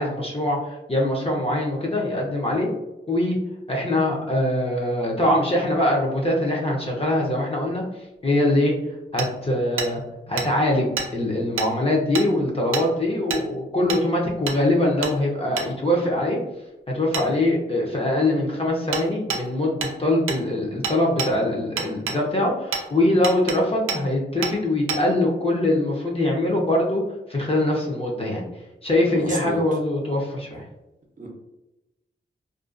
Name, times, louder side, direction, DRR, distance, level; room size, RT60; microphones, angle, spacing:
voice 1, 0.0-2.7 3.1-3.4 3.7-7.8 8.2-8.7 9.1-10.0 10.3-16.4 16.9-27.0 27.3-28.4 28.8-30.6, left 1 dB, 30° left, -2 dB, 0.6 m, -23 dB
Hammer, 9.2-9.3 9.8-9.9 10.4-10.5 11.0-11.1 11.6-11.7 12.1-12.3 12.7-12.9 13.3-13.4 13.9-14.0 14.5-14.6 15.0-15.1 15.6-15.7 17.1-17.3 18.9-19.0 19.3-19.4 19.8-19.9 20.3-20.4 20.8-21.3 21.8-22.2 22.7-22.8 23.2-23.6 23.9-24.0 24.4-24.5 24.9-25.0, right 5 dB, 90° right, 0.4 m, -27 dB
voice 2, 29.1-29.6 31.2-31.3, equal, 40° right, -1 dB, 0.6 m, -30 dB
2.5 x 2.3 x 2.4 m, 0.96 s
wide cardioid pair, 75°, 20 cm